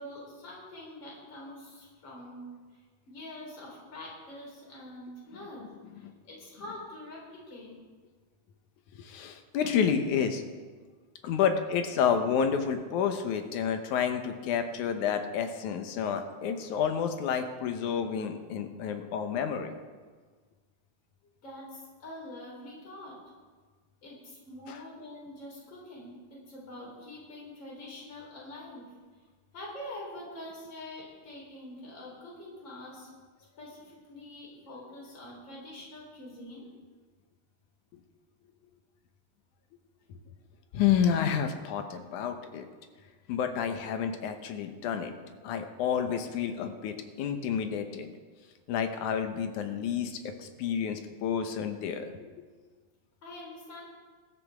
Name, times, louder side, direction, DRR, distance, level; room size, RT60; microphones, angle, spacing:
voice 1, 0.0-5.7 5.9-7.8 21.4-23.2 24.0-28.9 29.5-33.1 33.6-36.7 53.2-53.8, left 1 dB, 35° left, -3 dB, 4.6 m, -45 dB
voice 2, 9.0-10.4 11.2-19.7 24.7-24.8 40.7-42.7 43.3-45.1 45.4-48.1 48.7-52.4, left 7 dB, 85° left, 6 dB, 2.5 m, -30 dB
20.5 x 13.5 x 3.6 m, 1.5 s
omnidirectional pair, 3.4 m